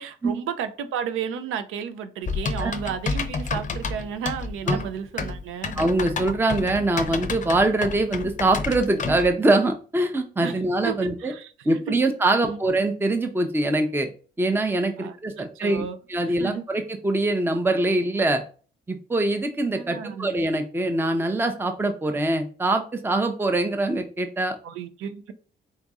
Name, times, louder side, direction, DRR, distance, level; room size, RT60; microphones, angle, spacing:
voice 1, 0.0-5.7 10.4-11.8 12.4-12.6 15.0-16.0 16.2-16.7 19.7-20.3 24.6-25.3, right 7 dB, 85° right, 0.5 m, -33 dB
Typing, 2.3-9.3, left 4 dB, 40° left, 0.6 m, -30 dB
voice 2, 5.8-11.3 11.7-14.1 14.4-15.8 16.1-18.4 18.9-24.6, right 2 dB, 10° right, 0.6 m, -23 dB
4.0 x 2.6 x 3.5 m
cardioid pair, 80°, 21 cm